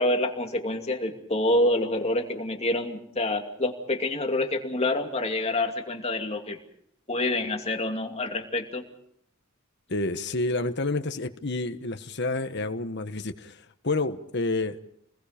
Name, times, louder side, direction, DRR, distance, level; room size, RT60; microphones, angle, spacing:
voice 1, 0.0-6.6 7.1-8.8, left 1 dB, 30° left, 4 dB, 2.6 m, -27 dB
voice 2, 9.9-14.9, left 2 dB, 60° left, 8 dB, 1.4 m, -29 dB
29.5 x 20.5 x 5.2 m, 0.68 s
head